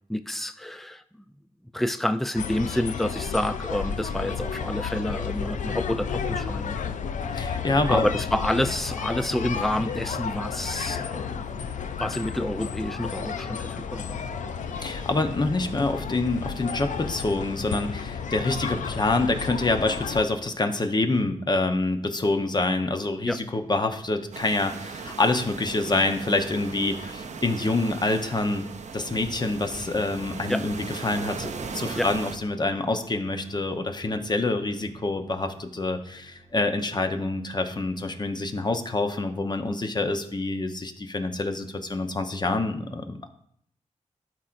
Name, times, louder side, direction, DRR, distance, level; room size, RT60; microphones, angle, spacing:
voice 1, 0.1-1.3 1.7-6.8 7.9-11.6 12.0-14.2 23.2-23.4 30.5-30.7 32.0-32.1, left 1 dB, ahead, 11 dB, 0.4 m, -28 dB
sound 1, 2.4-20.2, left 6 dB, 75° left, 0.5 m, -32 dB
voice 2, 7.3-8.1 14.8-28.7 28.9-43.3, left 2 dB, 35° left, 6 dB, 0.8 m, -26 dB
sound 2, 22.6-37.1, left 1 dB, 55° left, 1.5 m, -49 dB
sound 3, 24.3-32.4, right 5 dB, 65° right, 0.6 m, -38 dB
12.5 x 4.5 x 2.5 m, 0.68 s
cardioid pair, 65°, 13 cm